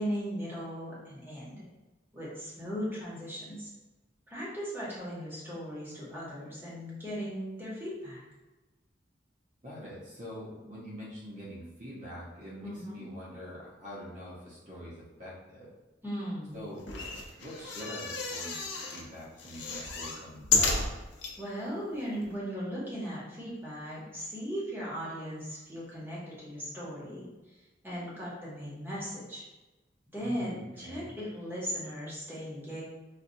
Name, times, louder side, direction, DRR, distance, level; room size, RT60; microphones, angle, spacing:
voice 1, 0.0-1.6 2.1-3.7 4.3-8.2 12.6-13.0 16.0-16.6 21.4-29.4 30.1-32.8, equal, 10° right, -7 dB, 0.9 m, -38 dB
voice 2, 9.6-15.7 16.5-16.8 17.4-18.6 18.9-20.9 30.1-31.1, equal, 40° right, -7 dB, 0.8 m, -44 dB
sound 1, 16.8-19.0 19.4-21.3 21.9-22.0 22.2-22.3, left 4 dB, 75° left, 0.6 m, -32 dB
4.2 x 2.3 x 2.6 m, 1.1 s
head